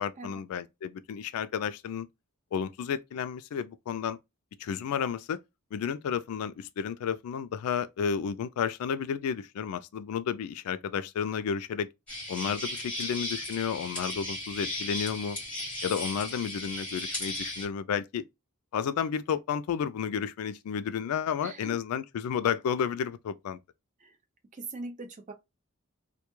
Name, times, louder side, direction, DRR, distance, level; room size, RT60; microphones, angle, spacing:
voice 1, 0.0-2.1 2.5-4.2 4.6-5.4 5.7-11.9 12.3-15.4 15.8-18.2 18.7-23.6, left 7 dB, 80° left, 0.3 m, -32 dB
sound 1, 12.1-17.6, left 1 dB, 5° left, 1.0 m, -36 dB
voice 2, 21.4-21.8 24.0-24.2 24.5-25.3, right 3 dB, 35° right, 0.4 m, -41 dB
2.2 x 2.2 x 3.0 m
head